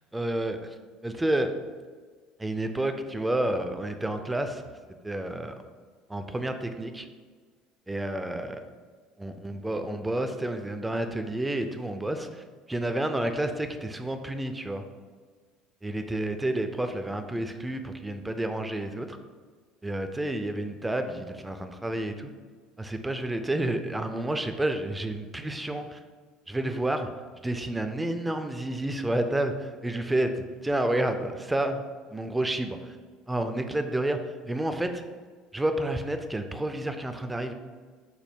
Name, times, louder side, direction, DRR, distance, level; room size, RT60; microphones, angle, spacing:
voice 1, 0.1-0.6 1.0-1.5 2.4-4.6 5.0-5.5 6.1-7.1 7.9-8.6 9.2-14.8 15.8-19.2 19.8-22.3 22.8-26.0 26.5-27.1 27.4-30.3 30.6-31.8 32.1-33.0 33.3-35.0 35.5-37.5, right 1 dB, 10° right, 7 dB, 0.4 m, -30 dB
5.2 x 2.1 x 4.4 m, 1.5 s
figure-of-eight pair, 60°, 0 cm